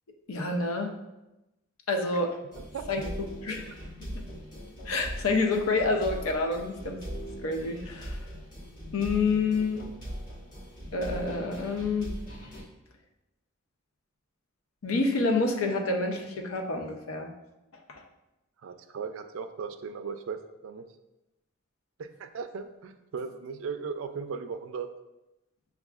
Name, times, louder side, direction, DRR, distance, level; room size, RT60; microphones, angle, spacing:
voice 1, 0.3-1.0 1.9-2.4 2.9-3.1 3.4-3.7 4.0-4.2 4.9-7.0 7.4-8.2 8.9-9.9 10.9-12.2 14.8-17.3, left 3 dB, 85° left, 3 dB, 0.6 m, -28 dB
sound 1, 2.5-12.6, equal, 40° left, 1.2 m, -40 dB
voice 2, 2.6-2.9 18.6-20.9 22.0-24.9, right 5 dB, 70° right, 8 dB, 0.3 m, -37 dB
6.8 x 2.3 x 2.3 m, 0.96 s
head